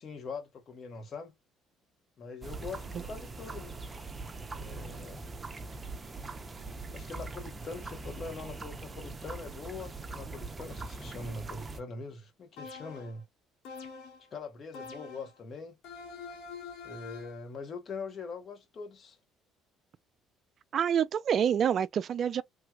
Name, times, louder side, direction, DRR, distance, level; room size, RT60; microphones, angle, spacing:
voice 1, 0.0-1.3 2.2-3.8 4.5-5.3 6.9-13.2 14.3-15.8 16.8-19.2, left 4 dB, 45° left, 1.7 m, -43 dB
sound 1, 2.4-11.8, right 3 dB, 25° right, 0.8 m, -42 dB
sound 2, 12.6-13.2 13.6-14.3 14.7-15.4 15.8-17.4, left 5 dB, 75° left, 1.5 m, -45 dB
voice 2, 20.7-22.4, right 8 dB, 50° right, 0.3 m, -27 dB
3.4 x 2.9 x 2.3 m
supercardioid pair, 85°, 0 cm